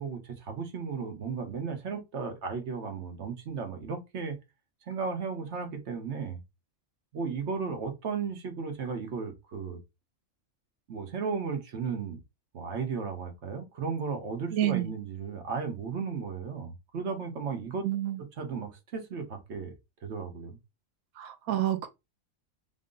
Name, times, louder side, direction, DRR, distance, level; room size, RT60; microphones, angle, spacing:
voice 1, 0.0-4.4 4.9-6.4 7.1-9.8 10.9-12.2 12.5-17.9 18.4-19.7 20.0-20.6, right 5 dB, 60° right, 1.2 m, -35 dB
voice 2, 14.5-14.9 17.8-18.2 21.2-21.9, right 13 dB, 85° right, 1.1 m, -28 dB
3.8 x 2.1 x 3.7 m
omnidirectional pair, 1.4 m